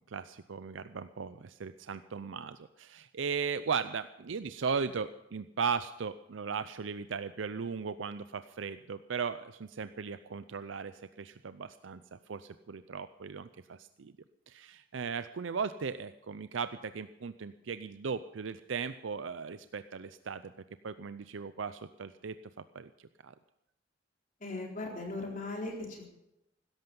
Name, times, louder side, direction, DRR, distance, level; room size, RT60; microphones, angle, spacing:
voice 1, 0.0-14.1 14.5-20.5 20.8-22.4 22.7-23.3, right 5 dB, 75° right, 12 dB, 0.5 m, -37 dB
voice 2, 24.4-26.1, left 2 dB, 40° left, 0 dB, 4.1 m, -38 dB
16.5 x 13.5 x 5.4 m, 0.86 s
head